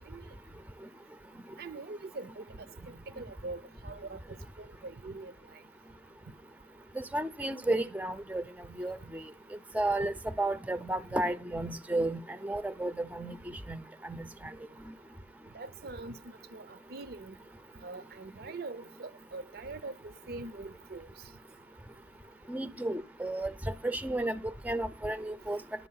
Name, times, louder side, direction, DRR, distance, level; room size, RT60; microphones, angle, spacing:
voice 1, 1.6-2.4 2.8-4.2 4.6-5.3 15.5-17.4 17.8-21.1, right 3 dB, 55° right, 0.5 m, -43 dB
voice 2, 7.0-8.4 8.8-9.2 9.7-14.3 22.5-23.5 23.8-24.4 24.6-25.6, right 1 dB, 10° right, 0.5 m, -33 dB
11.0 x 7.1 x 5.6 m
head